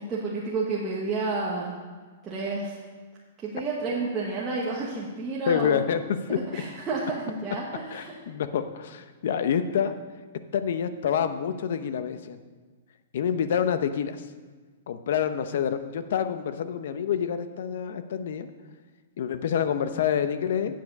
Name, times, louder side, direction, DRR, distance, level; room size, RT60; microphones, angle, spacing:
voice 1, 0.0-1.7 2.2-2.8 3.4-5.8 6.3-8.1, right 3 dB, 15° right, -6 dB, 1.1 m, -30 dB
voice 2, 5.5-6.4 7.9-10.0 10.5-12.4 13.1-14.2 14.9-18.5 19.2-20.8, left 8 dB, 60° left, 10 dB, 0.7 m, -27 dB
9.5 x 7.5 x 5.3 m, 1.4 s
hypercardioid pair, 165°, 0 cm